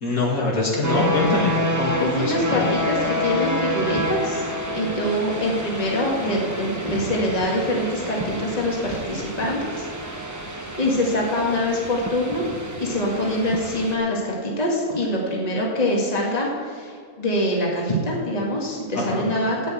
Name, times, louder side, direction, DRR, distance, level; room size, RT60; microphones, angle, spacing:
voice 1, 0.0-2.7 18.9-19.3, left 3 dB, 75° left, -2 dB, 2.5 m, -24 dB
sound 1, 0.8-14.0, equal, 15° right, 0.8 m, -28 dB
voice 2, 2.0-4.5 4.7-12.5 12.8-19.7, left 1 dB, 25° left, -2 dB, 1.9 m, -24 dB
8.9 x 8.3 x 8.0 m, 2.1 s
omnidirectional pair, 1.5 m